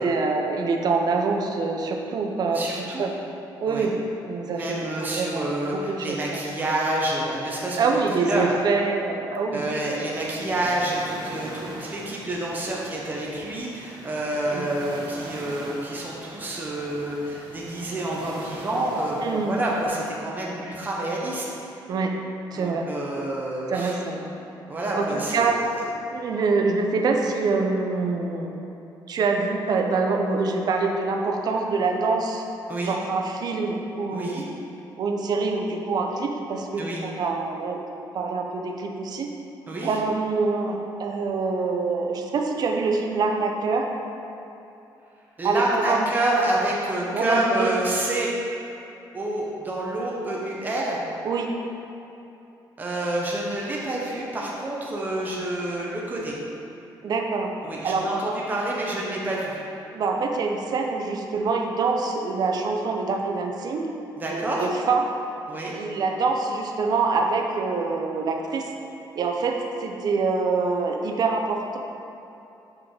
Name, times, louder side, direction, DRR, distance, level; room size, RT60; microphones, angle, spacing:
voice 1, 0.0-3.1 3.6-3.9 4.2-6.4 7.8-9.6 14.5-14.7 19.2-19.6 21.9-22.2 22.5-22.9 23.7-24.2 25.0-25.6 26.1-28.5 29.1-32.4 32.8-34.4 35.0-39.3 39.8-43.9 45.4-46.0 47.1-47.7 51.2-51.6 57.0-57.5 57.8-58.4 59.9-63.9 64.3-65.0 65.7-68.7 69.2-71.8, right 4 dB, 55° right, 2 dB, 0.7 m, -25 dB
voice 2, 2.5-3.0 3.7-3.9 4.5-8.6 9.5-21.4 22.5-24.0 24.7-25.7 32.7-32.9 34.1-34.4 36.8-37.0 39.7-39.9 45.4-48.3 49.1-51.0 52.8-56.3 57.6-59.6 64.2-64.7 65.5-65.7, right 1 dB, 20° right, -4 dB, 1.0 m, -28 dB
sound 1, 10.1-19.9, right 2 dB, 80° right, 1.3 m, -42 dB
6.0 x 4.8 x 4.8 m, 2.9 s
cardioid pair, 120°, 8 cm